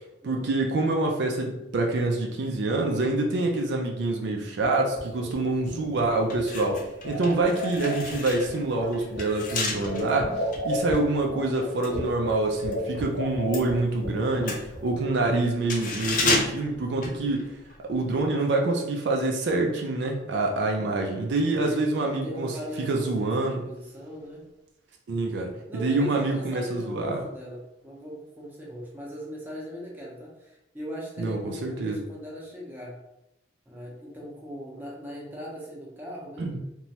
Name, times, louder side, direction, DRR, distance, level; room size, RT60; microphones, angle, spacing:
voice 1, 0.2-17.5 17.9-22.6 22.9-23.6 25.1-27.2 31.2-32.0 36.4-36.6, right 2 dB, 60° right, 1 dB, 0.4 m, -26 dB
sound 1, 4.6-15.1, left 1 dB, 80° left, 1.0 m, -34 dB
sound 2, 6.2-12.8 13.1-17.8 18.0-18.2, left 3 dB, 40° left, 0.5 m, -33 dB
voice 2, 21.6-24.4 25.7-33.0 33.7-36.5, equal, 10° right, -5 dB, 0.6 m, -39 dB
3.0 x 2.2 x 2.7 m, 0.89 s
head